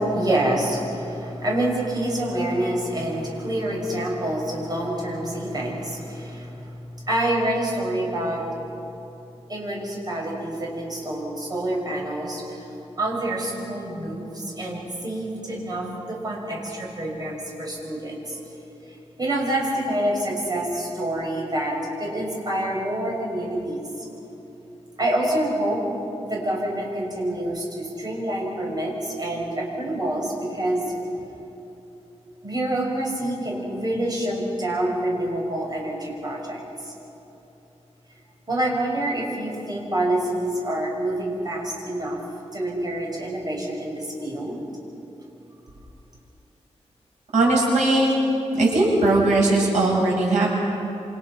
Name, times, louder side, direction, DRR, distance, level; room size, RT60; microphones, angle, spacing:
voice 1, 0.0-8.5 8.9-9.0 9.5-12.7 13.0-18.7 19.2-24.1 25.0-25.8 26.2-30.9 32.4-36.9 38.5-42.2 42.5-44.6, right 1 dB, 35° right, -2 dB, 6.0 m, -27 dB
voice 2, 47.3-48.2 48.5-50.5, right 2 dB, 85° right, -3 dB, 7.1 m, -19 dB
28.0 x 26.5 x 6.1 m, 3.0 s
wide cardioid pair, 145°, 12 cm